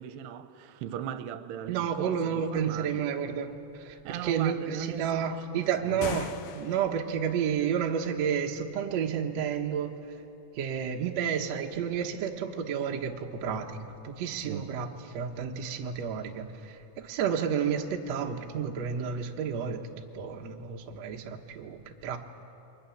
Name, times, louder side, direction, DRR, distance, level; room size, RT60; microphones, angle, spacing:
voice 1, 0.0-3.2 4.0-6.0 14.2-14.7, right 10 dB, 80° right, 2.7 m, -39 dB
voice 2, 1.7-10.0 10.6-14.9 15.1-16.8 17.0-19.8 20.1-22.2, right 7 dB, 65° right, 1.7 m, -31 dB
sound 1, 5.8-7.1, left 9 dB, 75° left, 2.1 m, -38 dB
29.5 x 23.5 x 7.2 m
omnidirectional pair, 4.9 m